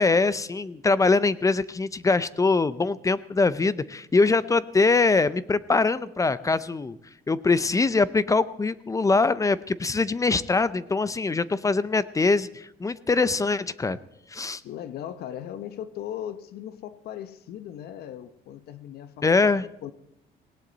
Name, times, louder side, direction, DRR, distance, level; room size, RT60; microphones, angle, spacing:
voice 1, 0.0-7.0 7.3-14.0 14.3-14.6 19.2-19.6, left 3 dB, 20° left, 17 dB, 0.6 m, -23 dB
voice 2, 14.6-19.9, left 10 dB, 70° left, 13 dB, 0.9 m, -38 dB
18.5 x 17.5 x 4.0 m, 0.81 s
cardioid pair, 110°, 17 cm